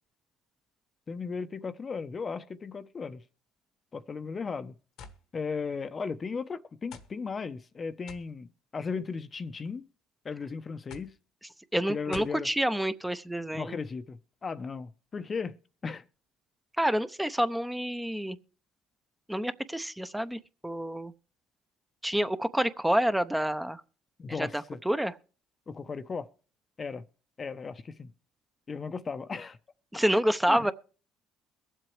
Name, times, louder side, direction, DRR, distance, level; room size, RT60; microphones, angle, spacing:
voice 1, 1.1-3.2 3.9-4.7 5.3-9.9 10.2-11.1 11.9-12.5 13.5-15.5 15.8-16.0 24.2-24.8 25.7-26.3 26.8-27.0 27.4-28.1 28.7-29.6 30.5-30.7, left 5 dB, 35° left, 0.7 m, -36 dB
sound 1, 5.0-5.2 6.1-6.2 6.9-7.1 8.1-8.3 9.3-9.7 10.9-11.2 12.1-12.4, left 5 dB, 70° left, 1.2 m, -46 dB
voice 2, 11.7-13.8 16.8-18.4 19.3-21.1 22.0-23.8 24.4-25.1 29.9-30.7, equal, 5° right, 0.7 m, -28 dB
22.5 x 7.7 x 3.2 m
supercardioid pair, 85°, 0 cm